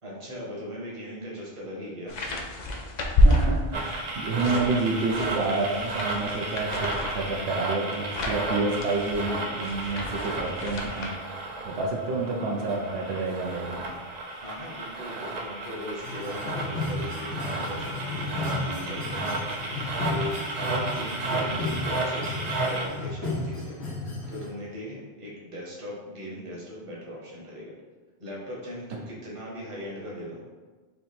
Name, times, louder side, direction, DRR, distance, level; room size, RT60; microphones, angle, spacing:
voice 1, 0.0-2.2 14.4-19.8 20.1-27.7 28.2-30.4, left 1 dB, 30° right, -4 dB, 1.0 m, -39 dB
sound 1, 2.1-4.0 4.4-11.1, left 1 dB, 55° left, 0.5 m, -28 dB
voice 2, 3.1-13.8, right 3 dB, 80° right, -1 dB, 0.9 m, -29 dB
sound 2, 3.7-22.9, right 2 dB, 50° right, 0.5 m, -33 dB
sound 3, 16.0-24.5, left 2 dB, 90° left, 1.1 m, -33 dB
3.4 x 2.8 x 4.2 m, 1.4 s
omnidirectional pair, 1.1 m